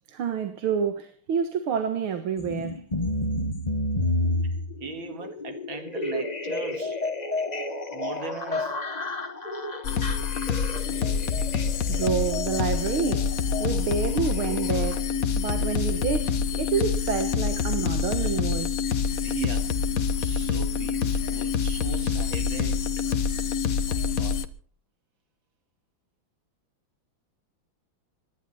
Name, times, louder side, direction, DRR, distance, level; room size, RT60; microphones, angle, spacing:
voice 1, 0.1-2.8 10.9-11.2 11.9-18.9, right 7 dB, 90° right, 2.2 m, -29 dB
sound 1, 2.4-15.0, left 2 dB, 25° left, 1.2 m, -31 dB
voice 2, 4.8-7.0 7.9-8.8 19.1-19.8 20.2-22.9 23.9-24.4, right 5 dB, 70° right, 2.8 m, -39 dB
sound 2, 9.8-24.5, left 6 dB, 50° left, 1.3 m, -26 dB
27.0 x 12.0 x 4.2 m
omnidirectional pair, 2.2 m